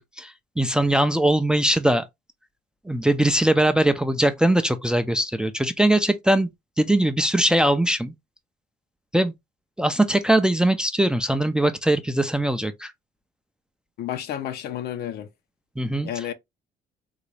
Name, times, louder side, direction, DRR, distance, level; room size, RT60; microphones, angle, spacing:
voice 1, 0.0-2.1 2.9-6.5 6.8-8.1 9.1-9.3 9.8-12.9 15.8-16.1, right 1 dB, 5° right, 0.4 m, -21 dB
voice 2, 14.0-15.3 16.0-16.3, left 10 dB, 70° left, 0.6 m, -31 dB
3.9 x 2.2 x 3.2 m
cardioid pair, 110°, 17 cm